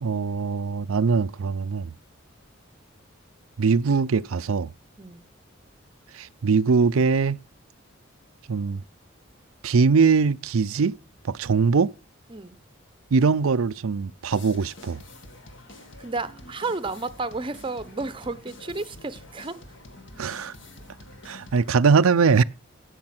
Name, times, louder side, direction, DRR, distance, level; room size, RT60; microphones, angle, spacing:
voice 1, 0.0-1.9 3.6-4.7 6.1-7.4 8.5-8.8 9.6-10.9 11.3-11.9 13.1-15.0 20.2-20.5 21.2-22.4, right 5 dB, 90° right, 0.5 m, -21 dB
sound 1, 14.3-21.7, left 2 dB, 60° left, 2.1 m, -47 dB
voice 2, 16.0-19.6, right 3 dB, 25° right, 0.7 m, -32 dB
16.5 x 6.6 x 6.0 m
head